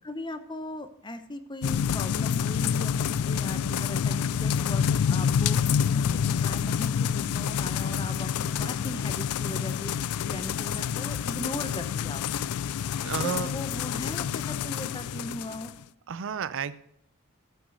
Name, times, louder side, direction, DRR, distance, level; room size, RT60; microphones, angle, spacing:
voice 1, 0.0-12.4 13.2-15.7, left 1 dB, 20° left, 10 dB, 0.9 m, -38 dB
sound 1, 1.6-15.7, left 7 dB, 85° left, 0.4 m, -28 dB
voice 2, 13.0-13.5 16.1-16.8, right 5 dB, 65° right, 15 dB, 0.5 m, -32 dB
14.0 x 6.2 x 6.4 m, 0.71 s
head